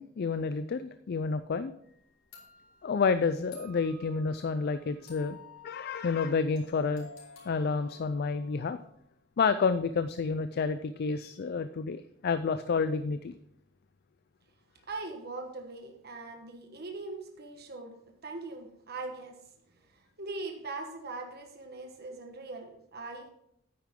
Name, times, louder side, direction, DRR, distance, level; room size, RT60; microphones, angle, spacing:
voice 1, 0.0-1.7 2.8-5.4 5.6-7.1 7.4-8.8 9.4-13.3, left 5 dB, 50° left, 12 dB, 0.4 m, -29 dB
sound 1, 1.8-1.9 2.3-9.1, left 4 dB, 90° left, 3.8 m, -54 dB
voice 2, 14.9-19.4 19.7-23.3, right 3 dB, 55° right, 3 dB, 1.3 m, -41 dB
9.6 x 9.2 x 3.7 m, 0.73 s
head